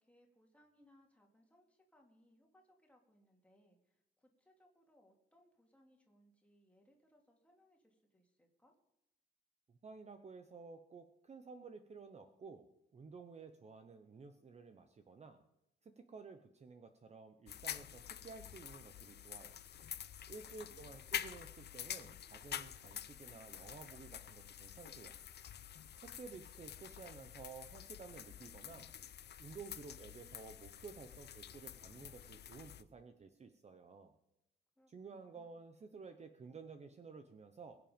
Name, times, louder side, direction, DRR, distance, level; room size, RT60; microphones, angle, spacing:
voice 1, 0.0-8.8 20.5-21.0 34.8-35.6, equal, 5° left, 0 dB, 2.6 m, -70 dB
voice 2, 9.7-12.6 12.9-15.4 15.8-19.6 20.3-25.2 26.0-28.9 29.4-34.1 34.9-37.8, right 4 dB, 35° right, 8 dB, 0.8 m, -53 dB
sound 1, 17.5-32.8, left 9 dB, 60° left, 0.6 m, -48 dB
22.0 x 7.9 x 5.2 m, 0.88 s
wide cardioid pair, 165°, 20 cm